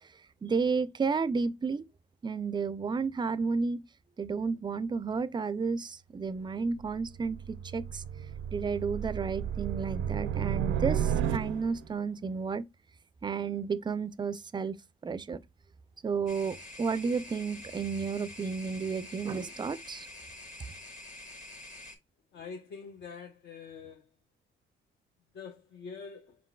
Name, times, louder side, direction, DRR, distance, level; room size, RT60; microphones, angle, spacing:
voice 1, 0.4-1.8 2.2-3.8 4.2-8.0 8.5-12.7 13.2-14.7 15.0-15.4 16.0-20.1, right 5 dB, 25° right, 0.3 m, -32 dB
sound 1, 6.7-11.9, right 9 dB, 80° right, 0.5 m, -33 dB
sound 2, 16.3-22.0, left 1 dB, 40° left, 1.4 m, -47 dB
voice 2, 22.3-24.0 25.3-26.4, left 5 dB, 60° left, 0.6 m, -45 dB
4.8 x 3.7 x 2.2 m
cardioid pair, 90°, 20 cm